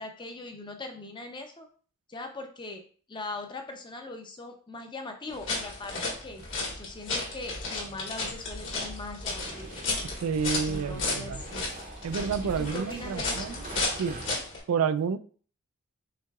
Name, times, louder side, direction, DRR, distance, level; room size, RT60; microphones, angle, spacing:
voice 1, 0.0-1.7 2.1-2.8 3.1-6.4 6.8-9.7 10.7-11.7 12.4-13.6, left 2 dB, 20° left, 5 dB, 0.6 m, -40 dB
sound 1, 5.3-14.6, left 3 dB, 55° left, 1.6 m, -34 dB
sound 2, 9.4-14.4, right 3 dB, 35° right, 0.7 m, -44 dB
voice 2, 10.2-11.4 12.0-13.7 14.0-14.2 14.7-15.2, right 6 dB, 75° right, 11 dB, 0.3 m, -29 dB
5.7 x 3.8 x 2.3 m, 0.43 s
head